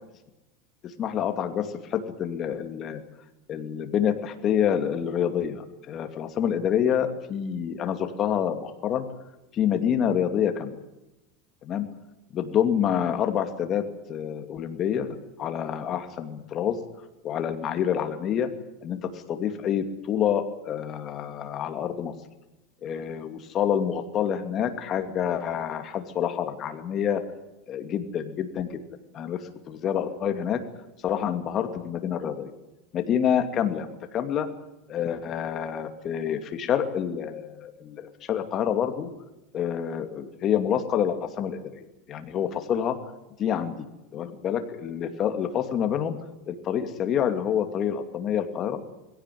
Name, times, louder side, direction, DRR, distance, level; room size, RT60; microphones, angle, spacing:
voice 1, 0.8-3.0 3.5-9.1 9.5-10.7 11.6-11.9 12.3-16.8 17.2-18.5 18.8-22.1 22.8-27.2 27.7-28.8 29.1-30.6 31.0-32.5 32.9-34.5 34.9-39.1 39.5-43.0 43.4-43.7 44.1-46.2 46.5-48.8, left 9 dB, 35° left, 7 dB, 2.6 m, -27 dB
21.5 x 17.0 x 9.4 m, 0.96 s
supercardioid pair, 145°, 0 cm